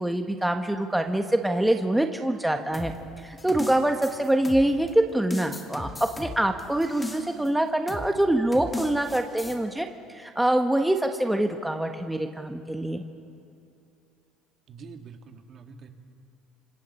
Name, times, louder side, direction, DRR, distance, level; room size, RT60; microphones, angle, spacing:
voice 1, 0.0-2.9 3.2-5.9 6.2-13.0, right 1 dB, 5° right, 5 dB, 1.1 m, -25 dB
sound 1, 2.7-4.9 5.3-7.5 7.9-8.1 8.5-9.6, left 2 dB, 15° left, 2.4 m, -36 dB
voice 2, 14.7-15.9, right 5 dB, 45° right, 5 dB, 1.9 m, -45 dB
26.5 x 26.5 x 4.3 m, 2.7 s
cardioid pair, 115°, 0 cm